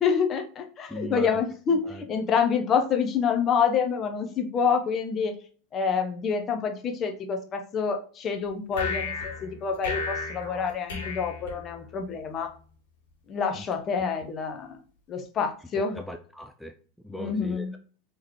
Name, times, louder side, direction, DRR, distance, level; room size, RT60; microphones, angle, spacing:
voice 1, 0.0-5.3 5.7-12.5 13.3-14.8 15.1-15.9 17.1-17.7, left 6 dB, 35° left, 5 dB, 0.7 m, -27 dB
voice 2, 0.9-1.4 1.7-2.0 13.6-13.7 15.9-16.7 17.0-17.8, equal, 5° left, 5 dB, 0.3 m, -38 dB
sound 1, 8.7-12.1, left 4 dB, 70° left, 1.5 m, -34 dB
3.7 x 3.1 x 2.9 m, 0.42 s
hypercardioid pair, 90°, 0 cm